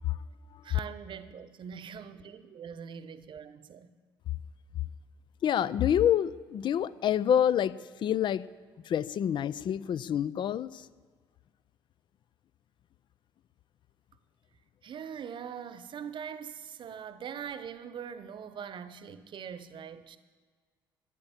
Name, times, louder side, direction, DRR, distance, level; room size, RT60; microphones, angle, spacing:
voice 1, 0.6-3.9 14.8-20.2, right 7 dB, 40° right, 0.9 m, -42 dB
voice 2, 5.4-8.5 8.9-10.9, left 10 dB, 40° left, 0.5 m, -27 dB
13.0 x 9.7 x 7.3 m
figure-of-eight pair, 50°, 12 cm